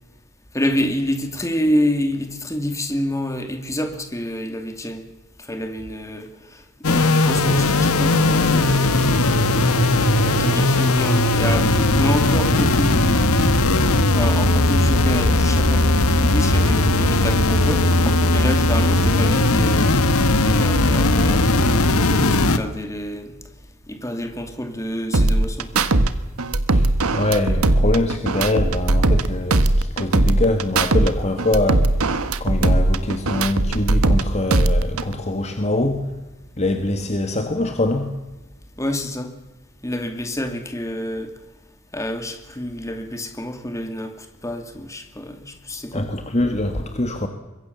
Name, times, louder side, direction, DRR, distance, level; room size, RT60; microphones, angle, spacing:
voice 1, 0.5-5.1 5.4-9.5 10.3-13.5 14.1-20.1 20.5-23.4 23.9-25.9 38.8-39.3 39.8-41.3 41.9-46.1, left 1 dB, 15° left, 6 dB, 2.5 m, -28 dB
sound 1, 6.8-22.6, left 2 dB, 75° left, 1.6 m, -18 dB
sound 2, 25.1-26.1 26.4-29.3 29.5-31.1 31.4-34.2 34.5-35.1, right 2 dB, 75° right, 1.4 m, -19 dB
voice 2, 26.7-32.0 32.4-36.1 36.6-38.1 45.9-47.3, left 2 dB, 30° left, 6 dB, 1.7 m, -23 dB
25.5 x 22.0 x 7.0 m, 1.1 s
head